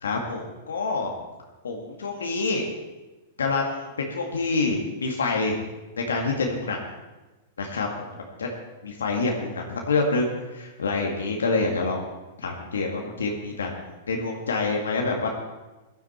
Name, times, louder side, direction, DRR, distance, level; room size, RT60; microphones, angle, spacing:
voice 1, 0.0-1.1 1.6-2.6 3.4-5.6 6.0-6.8 7.6-8.5 8.8-12.0 12.4-13.7 14.1-15.3, left 3 dB, 90° left, 1 dB, 2.0 m, -27 dB
16.5 x 11.5 x 4.4 m, 1.1 s
hypercardioid pair, 115°, 0 cm